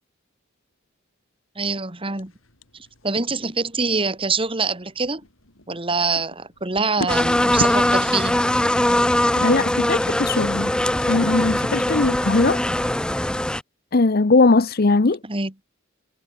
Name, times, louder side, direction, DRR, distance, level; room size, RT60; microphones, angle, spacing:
voice 1, 1.6-2.3 2.7-5.2 5.7-8.4 15.2-15.5, right 4 dB, 25° right, 2.6 m, -25 dB
sound 1, 2.2-11.4, left 1 dB, 90° left, 7.4 m, -39 dB
sound 2, 7.1-13.6, left 1 dB, 5° left, 0.4 m, -21 dB
voice 2, 9.4-10.7 11.1-12.6 13.9-15.2, left 3 dB, 50° left, 0.8 m, -19 dB
head